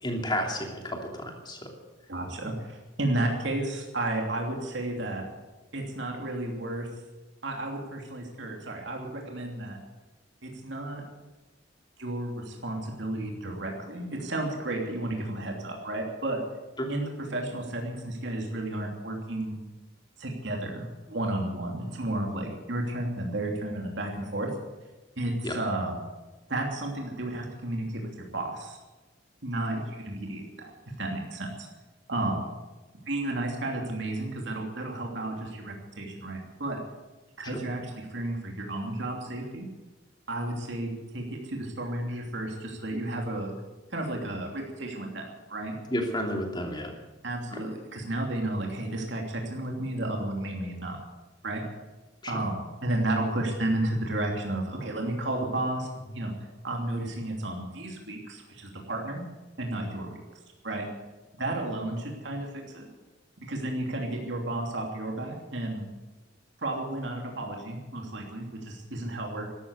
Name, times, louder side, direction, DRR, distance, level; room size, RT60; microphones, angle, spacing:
voice 1, 0.0-1.6 16.8-16.9 25.4-25.5 37.5-37.6 45.9-46.9 52.2-52.3, equal, 25° left, 1 dB, 2.8 m, -31 dB
voice 2, 2.1-5.2 5.7-6.9 7.4-9.8 10.4-11.0 12.0-16.4 16.9-19.6 20.2-24.5 25.2-26.0 26.5-27.8 28.3-28.8 29.4-30.7 31.0-31.7 32.1-32.5 33.1-36.8 37.4-39.7 40.3-43.5 43.9-45.7 47.2-51.0 51.4-51.6 52.3-56.3 56.6-59.2 59.6-60.2 60.6-60.9 61.4-62.9 63.5-65.8 66.6-69.5, right 1 dB, 65° right, 0 dB, 2.9 m, -32 dB
13.5 x 13.0 x 8.3 m, 1.2 s
head